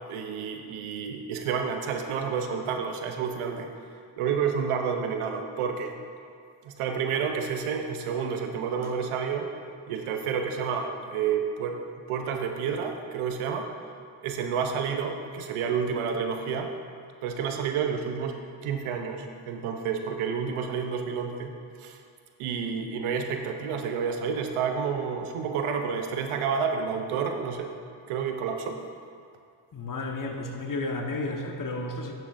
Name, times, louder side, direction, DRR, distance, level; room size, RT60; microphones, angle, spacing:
voice 1, 0.1-3.7 4.2-5.9 6.6-9.5 9.9-11.8 12.1-13.7 14.2-16.7 17.2-21.5 21.8-22.0 22.4-27.7 28.1-28.8, right 6 dB, 85° right, 5 dB, 0.8 m, -30 dB
voice 2, 29.7-32.1, left 2 dB, 40° left, 3 dB, 1.2 m, -32 dB
11.0 x 7.6 x 2.6 m, 2.2 s
supercardioid pair, 50°, 49 cm